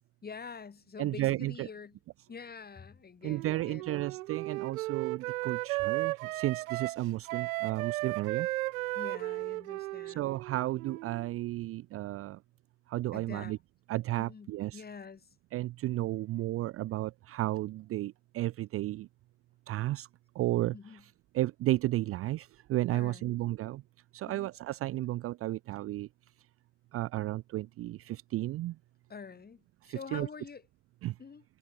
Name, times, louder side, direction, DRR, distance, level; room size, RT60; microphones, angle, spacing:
voice 1, 0.2-2.0 2.3-4.0 9.0-10.3 13.1-13.6 14.2-15.3 20.7-21.0 22.9-23.4 24.3-24.5 29.1-30.6 31.2-31.4, left 5 dB, 20° left, 5.3 m, -46 dB
voice 2, 1.0-1.7 3.2-8.5 10.1-12.4 12.9-13.6 13.9-14.8 15.5-19.1 19.7-20.1 20.3-20.7 21.3-23.8 24.1-26.1 26.9-28.8 29.8-30.3 31.0-31.1, right 16 dB, 25° right, 0.8 m, -33 dB
Wind instrument woodwind instrument, 3.3-11.3, right 20 dB, 55° right, 1.1 m, -35 dB
figure-of-eight pair, 75°, 50 cm